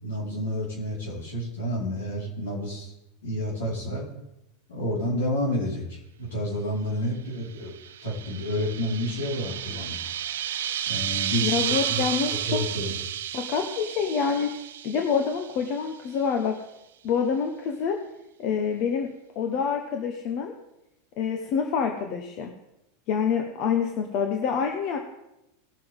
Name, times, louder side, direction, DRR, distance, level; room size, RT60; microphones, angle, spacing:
voice 1, 0.0-2.9 3.2-4.1 4.7-7.7 8.0-10.0 10.9-11.5 11.9-12.0 12.5-12.9, equal, 80° left, -3 dB, 4.8 m, -30 dB
sound 1, 7.6-15.9, right 10 dB, 80° right, 0.5 m, -32 dB
voice 2, 11.4-12.6 13.3-14.6 14.8-16.6 17.0-18.0 18.4-20.6 21.2-22.5 23.1-25.0, left 6 dB, 50° left, 3 dB, 1.3 m, -27 dB
19.0 x 6.7 x 3.7 m, 0.88 s
hypercardioid pair, 105°, 0 cm